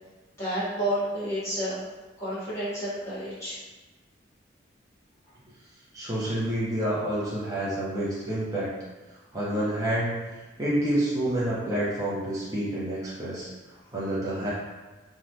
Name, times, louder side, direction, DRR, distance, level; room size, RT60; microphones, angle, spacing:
voice 1, 0.4-1.8 2.2-3.6, right 1 dB, 15° left, -12 dB, 1.1 m, -30 dB
voice 2, 5.9-8.7 9.3-10.2 10.6-13.5 13.9-14.5, right 1 dB, 20° right, -9 dB, 0.6 m, -28 dB
3.1 x 2.3 x 2.6 m, 1.2 s
head